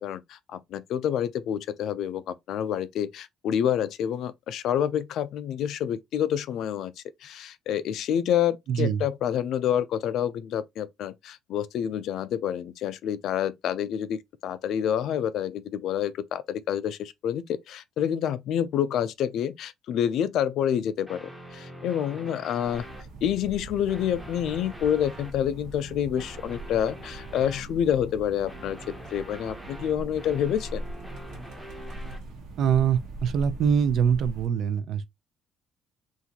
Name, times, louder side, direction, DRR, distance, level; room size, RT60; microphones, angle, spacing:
voice 1, 0.0-6.9 7.2-22.9 23.2-28.8 29.1-30.8, left 9 dB, 60° left, 0.4 m, -28 dB
voice 2, 8.7-9.0 32.6-35.0, right 7 dB, 55° right, 0.4 m, -24 dB
sound 1, 21.0-23.0 23.7-25.4 26.2-27.7 28.4-32.2, equal, 5° right, 0.7 m, -44 dB
sound 2, 22.6-34.5, right 1 dB, 80° right, 1.1 m, -41 dB
3.7 x 2.6 x 2.8 m
cardioid pair, 165°, 0 cm